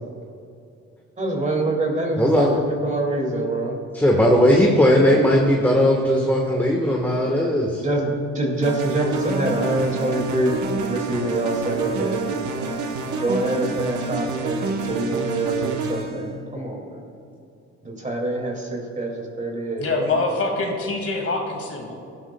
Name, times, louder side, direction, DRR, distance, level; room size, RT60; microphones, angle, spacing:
voice 1, 1.2-3.8 7.8-12.3 13.1-17.0 17.8-19.1 19.4-20.1, right 2 dB, 25° right, 0 dB, 2.4 m, -25 dB
voice 2, 2.2-2.6 3.9-7.8, equal, 5° left, -1 dB, 1.3 m, -18 dB
sound 1, 8.6-16.3, right 3 dB, 70° right, 1.2 m, -28 dB
voice 3, 19.8-21.9, left 3 dB, 50° left, 2 dB, 2.1 m, -25 dB
18.0 x 12.5 x 2.3 m, 2.5 s
cardioid pair, 90°, 30 cm